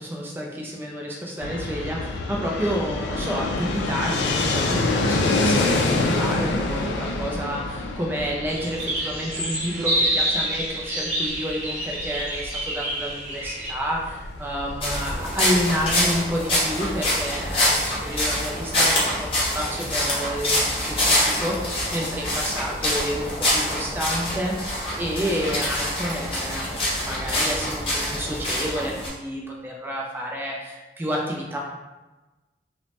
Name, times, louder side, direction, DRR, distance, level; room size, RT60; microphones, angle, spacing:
voice 1, 0.0-26.7 27.0-31.6, equal, 10° right, -2 dB, 0.4 m, -30 dB
Fixed-wing aircraft airplane, 1.4-17.1, left 2 dB, 90° left, 0.3 m, -27 dB
sound 1, 8.5-13.7, right 1 dB, 40° right, 0.9 m, -27 dB
sound 2, 14.8-29.1, left 1 dB, 30° left, 0.7 m, -25 dB
3.0 x 2.0 x 2.9 m, 1.1 s
head